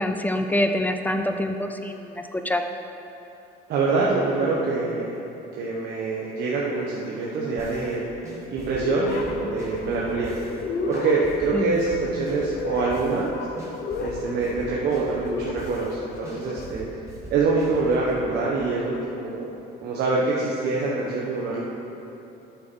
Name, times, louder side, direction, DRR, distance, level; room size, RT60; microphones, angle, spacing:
voice 1, 0.0-2.6 11.5-11.8, left 1 dB, 10° left, 6 dB, 0.5 m, -25 dB
voice 2, 3.7-5.2 5.6-8.0 8.5-10.3 10.9-13.3 14.0-16.9 17.3-19.5 19.8-21.6, right 3 dB, 75° right, -4 dB, 1.3 m, -25 dB
sound 1, 7.6-7.9 8.2-10.6 10.9-13.3 13.6-15.9 16.2-18.2, right 2 dB, 20° right, 2.6 m, -41 dB
sound 2, 8.7-16.7, left 4 dB, 60° left, 1.0 m, -33 dB
11.5 x 8.4 x 4.4 m, 3.0 s
cardioid pair, 110°, 17 cm